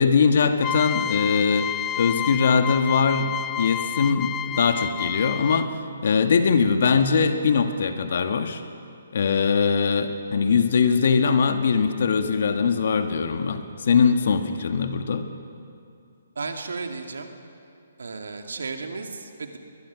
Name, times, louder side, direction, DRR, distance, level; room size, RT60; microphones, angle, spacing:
voice 1, 0.0-1.7 2.0-5.7 6.0-8.6 9.1-15.3, left 5 dB, 55° left, 7 dB, 1.8 m, -21 dB
sound 1, 0.6-5.9, left 12 dB, 15° left, 0.4 m, -30 dB
voice 2, 16.4-17.3 18.0-19.6, right 4 dB, 70° right, 5 dB, 2.3 m, -34 dB
21.5 x 21.0 x 6.3 m, 2.5 s
figure-of-eight pair, 140°, 0 cm